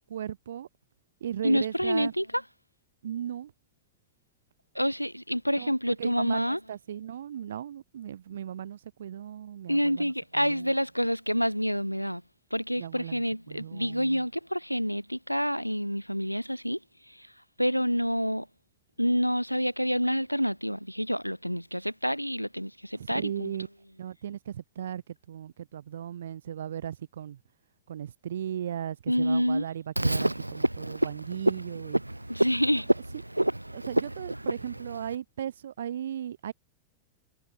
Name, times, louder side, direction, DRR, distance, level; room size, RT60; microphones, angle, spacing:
voice 1, 0.1-0.7 1.2-2.1 3.0-3.5 5.6-10.7 12.8-14.2 23.0-23.7 24.0-27.4 27.9-32.0 33.7-36.5, right 10 dB, 65° right, 3.2 m, -37 dB
voice 2, 1.4-2.4 4.7-6.6 9.7-12.2 12.5-16.8 17.1-17.3 17.6-18.5 19.0-23.5 29.1-29.7 32.3-32.9, equal, 90° left, 1.1 m, -28 dB
Frog, 30.0-35.2, right 1 dB, 85° right, 0.8 m, -29 dB
figure-of-eight pair, 90°, 0 cm